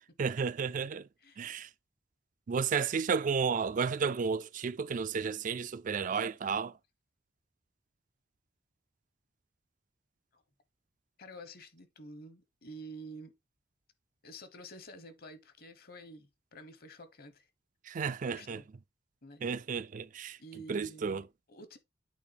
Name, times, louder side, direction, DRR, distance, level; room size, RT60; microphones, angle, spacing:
voice 1, 0.2-1.1 1.4-1.7 2.5-6.7 17.9-18.6 19.4-20.4 20.7-21.2, right 5 dB, 45° right, 0.4 m, -32 dB
voice 2, 11.2-13.3 14.2-17.5 18.0-18.6 19.2-19.4 20.4-21.8, right 1 dB, 55° left, 1.1 m, -49 dB
8.4 x 3.5 x 4.1 m
head